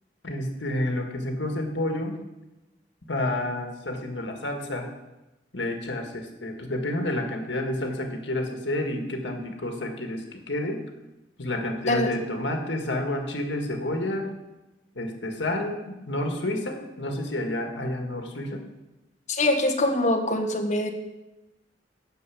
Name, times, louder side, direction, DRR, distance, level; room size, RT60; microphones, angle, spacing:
voice 1, 0.2-2.2 3.1-4.9 5.5-10.8 11.4-14.3 15.0-18.6, left 1 dB, 70° left, 3 dB, 1.8 m, -30 dB
voice 2, 19.3-20.9, left 1 dB, 40° left, 4 dB, 1.5 m, -23 dB
9.6 x 6.9 x 8.4 m, 1.0 s
head